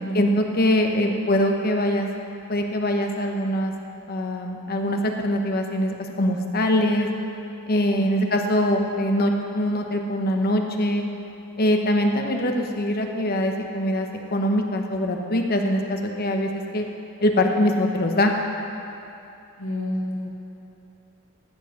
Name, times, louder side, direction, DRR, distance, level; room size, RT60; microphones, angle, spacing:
voice 1, 0.1-2.1 2.5-3.7 4.1-7.1 7.7-11.1 11.6-16.8 17.2-18.3, left 1 dB, 45° left, 3 dB, 0.9 m, -23 dB
voice 2, 7.9-8.3 19.6-20.4, left 1 dB, 90° left, -4 dB, 1.7 m, -30 dB
14.5 x 4.8 x 6.5 m, 2.8 s
head